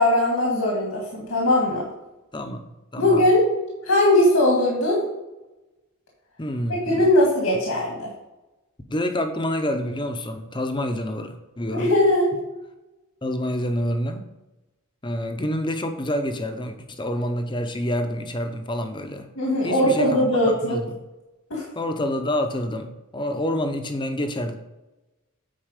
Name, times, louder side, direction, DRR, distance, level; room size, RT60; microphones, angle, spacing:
voice 1, 0.0-1.8 3.0-3.5 3.8-5.0 6.9-8.1 11.7-12.3 19.4-20.8 21.5-21.7, left 1 dB, 80° left, -2 dB, 1.9 m, -20 dB
voice 2, 2.3-3.2 6.4-7.0 8.9-11.9 13.2-14.3 15.0-19.3 19.6-20.9 21.7-24.5, left 1 dB, 20° left, 7 dB, 0.7 m, -28 dB
9.0 x 4.5 x 5.1 m, 1.0 s
head